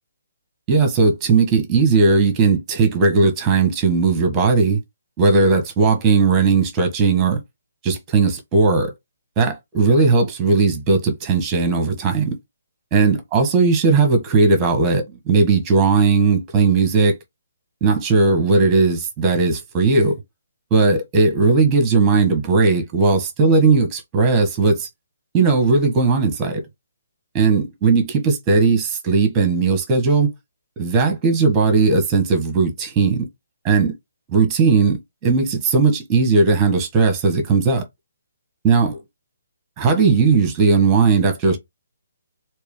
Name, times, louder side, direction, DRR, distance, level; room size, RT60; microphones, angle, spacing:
voice 1, 0.7-4.8 5.2-7.4 7.8-8.9 9.4-12.4 12.9-17.2 17.8-20.1 20.7-24.9 25.3-26.6 27.3-30.3 30.8-33.3 33.6-33.9 34.3-37.8 38.6-38.9 39.8-41.6, right 4 dB, 20° right, 1.5 m, -17 dB
3.3 x 2.9 x 3.7 m
figure-of-eight pair, 140°, 0 cm